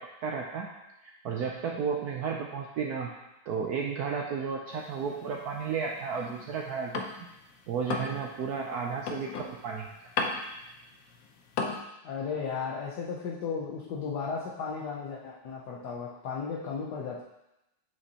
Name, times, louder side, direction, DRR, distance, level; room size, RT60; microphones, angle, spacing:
voice 1, 0.2-0.7 1.0-3.1 3.5-7.0 7.7-9.9, right 6 dB, 80° right, 0 dB, 0.8 m, -33 dB
sound 1, 4.7-7.4 7.7-11.8, left 4 dB, 80° left, 0.7 m, -36 dB
voice 2, 12.0-17.2, left 5 dB, 65° left, -3 dB, 1.1 m, -35 dB
8.1 x 5.2 x 2.8 m, 0.92 s
omnidirectional pair, 2.3 m